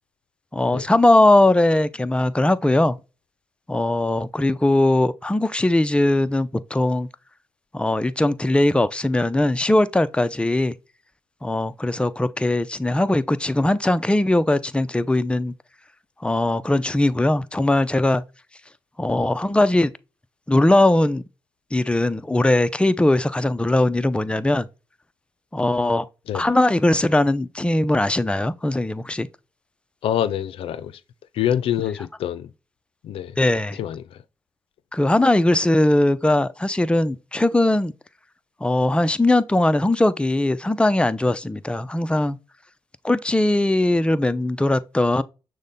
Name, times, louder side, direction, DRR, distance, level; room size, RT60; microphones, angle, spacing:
voice 1, 0.5-3.0 3.7-7.1 7.7-10.7 11.4-15.5 16.2-18.2 19.0-19.9 20.5-21.2 21.7-24.7 25.5-26.1 26.3-29.3 33.4-33.8 34.9-37.9 38.6-42.4 43.0-45.2, left 1 dB, 10° left, 0.5 m, -20 dB
voice 2, 30.0-30.9 31.3-32.5 33.0-33.3 33.8-34.2, left 10 dB, 80° left, 0.4 m, -25 dB
6.4 x 2.1 x 3.6 m
supercardioid pair, 55°, 9 cm